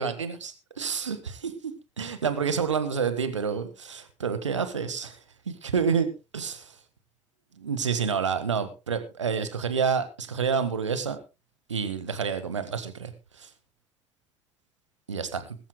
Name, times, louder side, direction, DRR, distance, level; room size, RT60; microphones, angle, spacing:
voice 1, 0.0-5.2 5.5-6.1 6.3-6.7 7.6-11.2 11.7-13.1 13.4-13.5 15.1-15.4, right 6 dB, 80° right, 10 dB, 1.5 m, -28 dB
21.5 x 13.5 x 2.2 m, 0.29 s
figure-of-eight pair, 55°, 15 cm